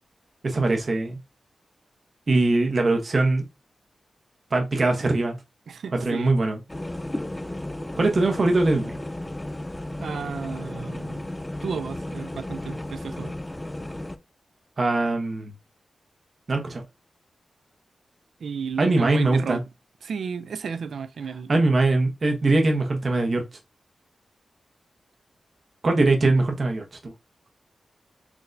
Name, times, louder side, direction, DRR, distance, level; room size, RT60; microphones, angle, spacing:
voice 1, 0.4-1.2 2.3-3.4 4.5-5.4 5.9-6.6 7.9-8.9 14.8-15.5 16.5-16.8 18.8-19.6 21.5-23.4 25.8-27.0, right 2 dB, 50° right, 0.7 m, -22 dB
voice 2, 5.7-6.3 10.0-11.2 11.6-13.3 18.4-19.6 20.0-21.5, right 6 dB, 85° right, 0.3 m, -33 dB
sound 1, 6.7-14.2, left 1 dB, 15° left, 0.4 m, -34 dB
5.9 x 2.2 x 2.5 m
cardioid pair, 65°, 0 cm